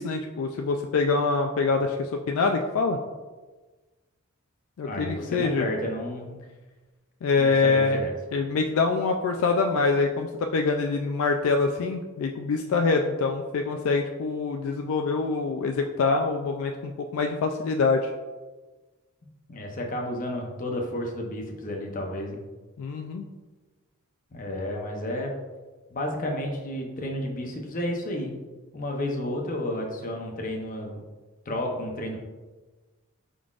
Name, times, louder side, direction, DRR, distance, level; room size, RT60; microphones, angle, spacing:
voice 1, 0.0-3.0 4.8-5.7 7.2-8.0 8.3-18.1 22.8-23.3, left 4 dB, 65° left, 4 dB, 0.3 m, -25 dB
voice 2, 4.9-6.4 7.3-8.1 19.5-22.4 24.3-25.3 25.9-28.4 28.7-31.0 31.5-32.2, left 1 dB, 40° left, 1 dB, 0.7 m, -31 dB
4.9 x 3.8 x 2.4 m, 1.3 s
head